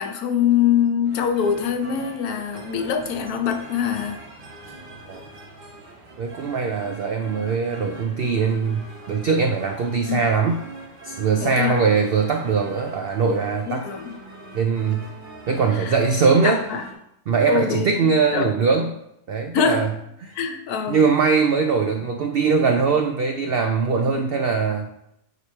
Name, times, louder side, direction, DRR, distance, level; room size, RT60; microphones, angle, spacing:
voice 1, 0.0-4.2 10.1-10.2 11.4-11.8 13.7-14.1 15.7-16.0 16.4-16.8 17.5-17.9 18.3-18.5 19.5-19.9 20.3-21.0, left 7 dB, 80° left, 6 dB, 1.3 m, -23 dB
sound 1, 1.0-16.9, right 2 dB, 40° right, 1.1 m, -42 dB
voice 2, 6.2-10.6 11.0-13.9 14.5-15.1 15.5-16.6 17.3-18.9 19.3-19.9 20.3-20.4 20.9-24.9, right 5 dB, 80° right, 4 dB, 0.5 m, -21 dB
9.1 x 3.1 x 4.3 m, 0.81 s
omnidirectional pair, 1.6 m